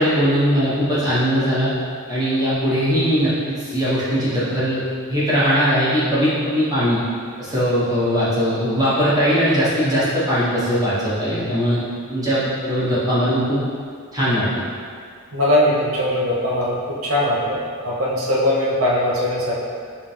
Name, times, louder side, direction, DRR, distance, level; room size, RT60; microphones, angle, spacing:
voice 1, 0.0-1.7 2.1-4.8 5.1-7.0 7.4-11.8 12.1-13.6 14.1-14.6, equal, 15° right, -11 dB, 1.4 m, -20 dB
voice 2, 15.3-19.5, left 1 dB, 70° right, -4 dB, 0.9 m, -20 dB
5.4 x 2.9 x 3.4 m, 2.1 s
head